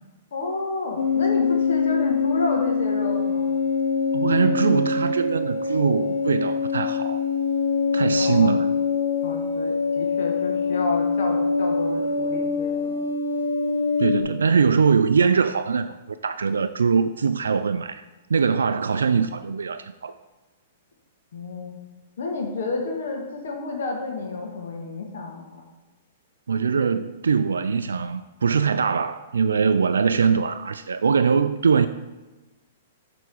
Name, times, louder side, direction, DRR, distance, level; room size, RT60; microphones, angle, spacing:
voice 1, 0.3-3.6 8.2-8.5 9.2-13.0 21.3-21.8 22.2-25.7, left 3 dB, 70° left, 1.5 m, -30 dB
sound 1, 1.0-14.2, left 5 dB, 90° left, 0.7 m, -24 dB
voice 2, 4.1-7.2 7.9-8.7 14.0-15.9 16.2-18.0 18.3-20.1 26.5-31.9, right 5 dB, 85° right, 0.3 m, -22 dB
7.9 x 3.5 x 6.1 m
hypercardioid pair, 120°, 0 cm